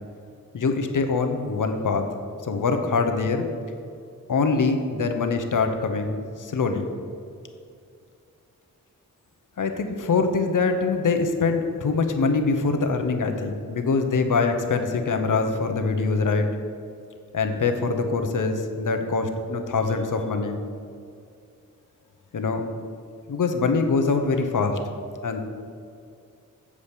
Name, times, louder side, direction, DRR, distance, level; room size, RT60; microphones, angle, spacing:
voice 1, 0.5-2.1 2.5-3.5 4.3-6.9 9.6-16.5 17.3-20.6 22.3-22.6 23.3-24.8 25.2-25.4, left 4 dB, 65° left, 6 dB, 1.0 m, -24 dB
8.3 x 5.0 x 7.3 m, 2.4 s
wide cardioid pair, 95°, 33 cm